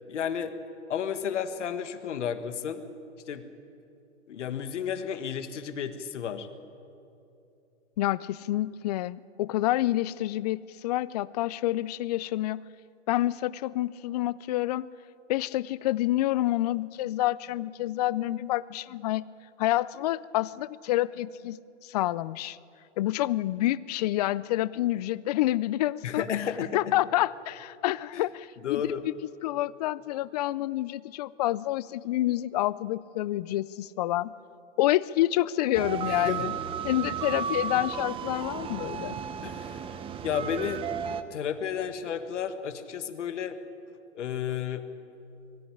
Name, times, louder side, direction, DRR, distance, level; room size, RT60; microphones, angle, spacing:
voice 1, 0.1-0.5 0.9-2.8 3.3-3.4 4.3-6.5 26.0-26.8 28.1-28.3 28.6-29.0 36.2-36.4 39.4-39.8 40.2-40.8 41.3-43.6 44.1-44.9, left 8 dB, 70° left, 10 dB, 1.6 m, -32 dB
voice 2, 8.0-12.6 13.1-14.9 15.3-19.3 19.6-22.6 23.0-26.5 26.7-29.1 29.4-34.3 34.8-36.5 36.8-39.2, left 15 dB, 35° left, 20 dB, 0.4 m, -28 dB
sound 1, 35.7-41.2, right 7 dB, 15° right, 0.7 m, -34 dB
22.5 x 13.5 x 10.0 m, 2.7 s
hypercardioid pair, 130°, 37 cm